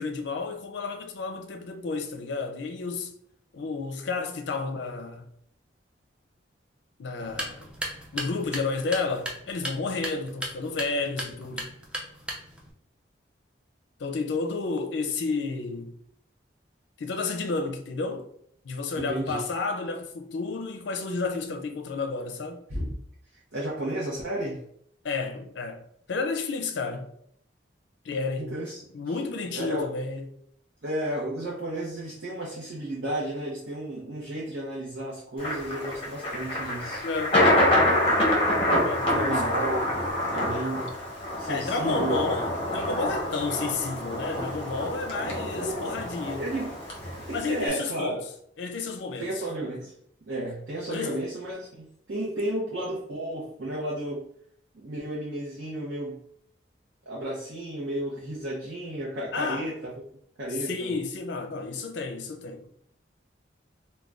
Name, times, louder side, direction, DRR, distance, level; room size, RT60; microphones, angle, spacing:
voice 1, 0.0-3.2 3.5-5.3 7.0-7.7 8.1-11.7 14.0-16.0 17.0-18.3 18.6-22.6 25.0-27.1 28.0-28.5 28.9-30.3 37.0-37.4 38.8-39.4 41.5-46.4 47.3-48.3 48.6-49.3 49.6-49.7 50.9-51.2 52.3-52.4 59.3-59.6 60.6-62.7, left 4 dB, 70° left, 0.4 m, -31 dB
sound 1, 7.2-12.7, right 1 dB, 5° right, 0.3 m, -37 dB
voice 2, 19.0-19.4 22.7-22.9 23.3-24.6 28.4-29.2 29.5-29.9 30.8-37.0 39.1-39.9 40.3-40.9 41.4-42.2 45.6-45.9 46.4-46.8 47.3-48.2 49.2-49.9 50.3-54.2 54.7-56.2 57.1-59.9 60.4-60.9, right 1 dB, 70° right, 0.7 m, -33 dB
Thunder, 35.4-47.7, left 1 dB, 30° left, 0.7 m, -26 dB
2.5 x 2.2 x 3.3 m
head